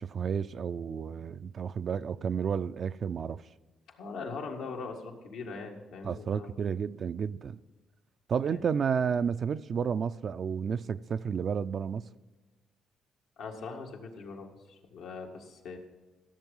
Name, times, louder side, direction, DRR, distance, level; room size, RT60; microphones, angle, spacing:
voice 1, 0.0-3.4 6.0-7.6 8.3-12.1, right 7 dB, 50° right, 0.3 m, -31 dB
voice 2, 3.9-6.5 8.5-8.6 13.4-15.8, left 4 dB, 85° left, 1.8 m, -41 dB
15.0 x 7.3 x 5.4 m
cardioid pair, 90°, 0 cm